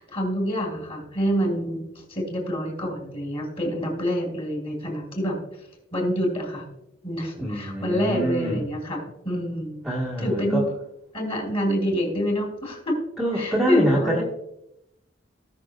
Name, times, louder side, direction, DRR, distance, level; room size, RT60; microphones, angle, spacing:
voice 1, 0.0-5.4 5.9-6.7 7.0-9.8 10.2-10.7 11.1-13.0 13.3-14.2, equal, 30° left, 0 dB, 3.4 m, -27 dB
voice 2, 7.4-8.6 9.8-10.6 13.2-14.2, right 1 dB, ahead, -5 dB, 1.6 m, -25 dB
18.5 x 6.5 x 2.4 m, 0.83 s
head